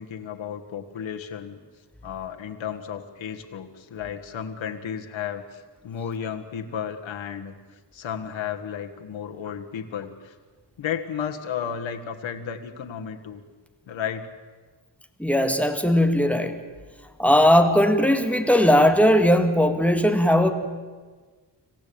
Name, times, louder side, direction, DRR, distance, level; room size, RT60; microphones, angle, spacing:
voice 1, 0.0-1.6 2.0-10.3 10.8-13.4 13.9-14.3, left 8 dB, 90° left, 4 dB, 1.7 m, -33 dB
voice 2, 15.2-16.6 17.2-20.5, equal, 5° left, 6 dB, 2.0 m, -18 dB
26.0 x 16.0 x 8.7 m, 1.4 s
wide cardioid pair, 110°, 45 cm